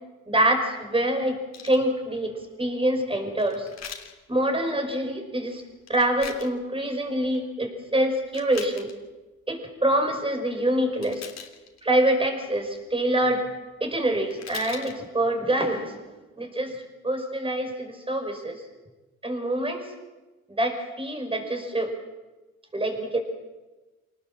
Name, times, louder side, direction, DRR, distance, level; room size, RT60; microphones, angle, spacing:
voice 1, 0.3-1.4 1.6-3.7 4.3-5.6 5.9-8.9 9.5-11.3 11.8-13.4 13.8-16.0 16.4-16.7 17.0-18.6 19.2-19.8 20.6-21.9 22.7-23.2, right 1 dB, 20° right, 5 dB, 5.7 m, -25 dB
sound 1, 1.5-1.8 3.4-4.1 5.8-6.5 7.1-7.4 8.2-9.0 11.0-11.9 14.0-14.1 14.3-15.0 15.6-15.7, left 7 dB, 60° left, 3.2 m, -41 dB
26.0 x 19.0 x 7.6 m, 1.2 s
cardioid pair, 90°, 30 cm